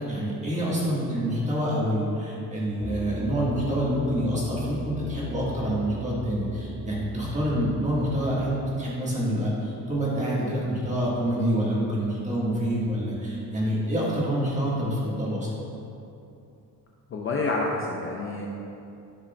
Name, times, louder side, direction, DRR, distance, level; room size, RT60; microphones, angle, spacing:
voice 1, 0.1-15.5, equal, 20° right, -6 dB, 1.4 m, -27 dB
sound 1, 2.8-8.3, equal, 80° left, 1.4 m, -38 dB
voice 2, 17.1-18.5, left 3 dB, 35° left, -1 dB, 0.5 m, -28 dB
10.0 x 4.9 x 2.2 m, 2.7 s
cardioid pair, 140°, 37 cm